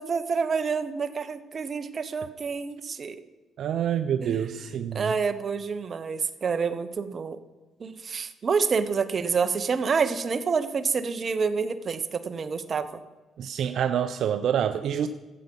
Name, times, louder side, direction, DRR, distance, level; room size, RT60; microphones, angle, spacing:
voice 1, 0.0-3.2 4.2-4.4 4.9-7.4 7.8-13.0, right 5 dB, 45° right, 10 dB, 0.9 m, -28 dB
voice 2, 3.6-5.1 13.4-15.1, right 9 dB, 70° right, 10 dB, 0.5 m, -27 dB
13.0 x 8.3 x 5.3 m, 1.2 s
cardioid pair, 90°, 0 cm